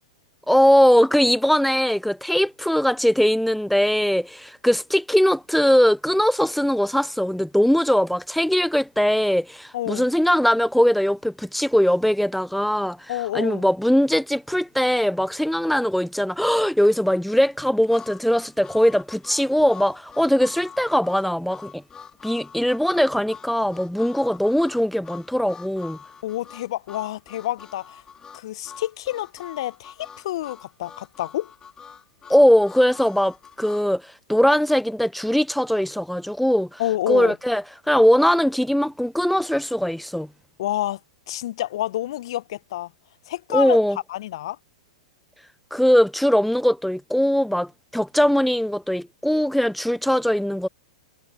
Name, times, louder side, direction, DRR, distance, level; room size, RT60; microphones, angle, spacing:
voice 1, 0.5-21.8 22.2-26.0 32.3-36.8 37.1-40.3 43.5-44.0 45.7-50.7, equal, ahead, 0.5 m, -20 dB
voice 2, 9.7-10.0 13.1-13.7 26.2-28.0 28.3-31.5 36.8-37.3 40.6-41.0 41.3-42.9 43.3-43.8 44.1-44.6, left 14 dB, 60° left, 0.9 m, -28 dB
Harmonica, 17.9-33.9, left 7 dB, 20° left, 3.7 m, -44 dB
figure-of-eight pair, 105°, 3 cm